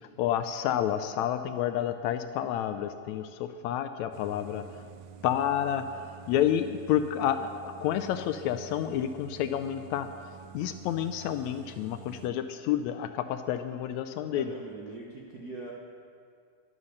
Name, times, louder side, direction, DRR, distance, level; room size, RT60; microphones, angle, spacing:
voice 1, 0.2-4.6 5.2-10.1 10.5-14.5, left 10 dB, 80° left, 9 dB, 1.7 m, -29 dB
sound 1, 4.1-12.3, right 8 dB, 85° right, 2.0 m, -49 dB
voice 2, 14.3-15.7, right 3 dB, 60° right, -3 dB, 1.0 m, -42 dB
11.0 x 11.0 x 6.5 m, 2.2 s
omnidirectional pair, 3.4 m